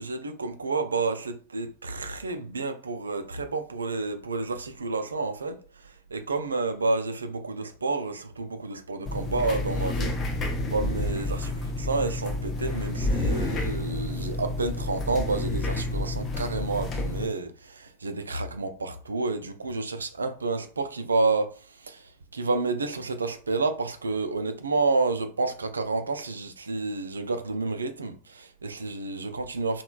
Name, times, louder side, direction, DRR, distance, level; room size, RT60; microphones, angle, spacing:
voice 1, 0.0-5.6 6.1-10.1 10.6-11.5 11.8-21.5 21.8-29.8, right 3 dB, 75° right, 0.3 m, -30 dB
sound 1, 9.1-17.3, left 2 dB, 25° left, 0.5 m, -29 dB
3.0 x 2.2 x 2.3 m
figure-of-eight pair, 90°, 0 cm